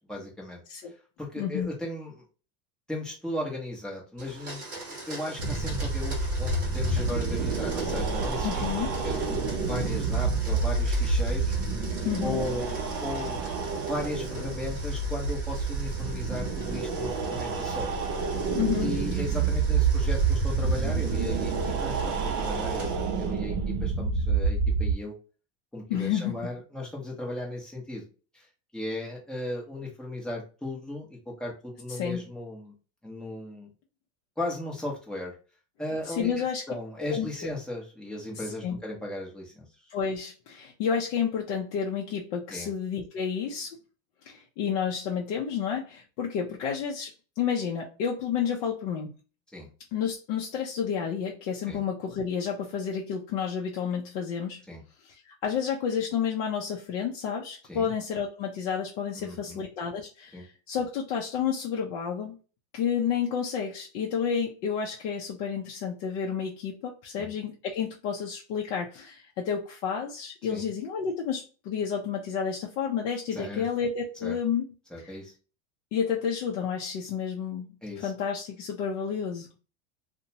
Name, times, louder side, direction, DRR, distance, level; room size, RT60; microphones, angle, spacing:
voice 1, 0.1-0.6 1.2-2.2 2.9-4.6 5.1-8.6 9.0-11.6 12.2-13.4 13.9-17.9 18.8-25.1 25.7-28.0 28.3-28.5 28.7-32.7 33.0-33.7 34.4-35.4 35.8-39.6 42.5-42.7 49.5-49.7 51.7-51.8 54.7-54.8 57.7-57.9 59.1-59.6 60.3-60.5 67.2-67.3 70.5-70.7 73.3-73.7 74.2-74.4 74.9-75.3 77.8-78.1, left 1 dB, ahead, 0.6 m, -36 dB
voice 2, 1.4-1.7 8.4-8.9 12.0-12.4 18.5-18.9 25.9-26.4 31.9-32.2 36.1-36.6 37.0-37.3 38.4-38.8 39.9-43.8 44.2-49.1 49.9-54.6 55.0-62.4 62.7-74.7 75.0-75.1 75.9-77.7 78.0-79.5, left 7 dB, 50° left, 0.5 m, -30 dB
Domestic sounds home sounds, 4.2-23.4, right 2 dB, 25° right, 1.0 m, -43 dB
sound 1, 5.4-24.9, right 4 dB, 50° right, 0.6 m, -28 dB
2.7 x 2.1 x 2.7 m
supercardioid pair, 150°, 36 cm